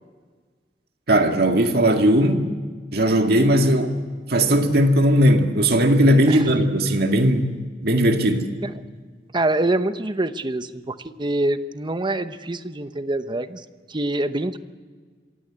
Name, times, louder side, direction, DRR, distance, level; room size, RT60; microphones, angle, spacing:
voice 1, 1.1-2.5 2.9-3.9 4.3-7.5 7.8-8.5, equal, 60° right, 4 dB, 2.0 m, -18 dB
voice 2, 9.3-13.6 13.9-14.6, right 2 dB, 25° right, 11 dB, 0.9 m, -25 dB
26.5 x 16.5 x 8.7 m, 1.5 s
head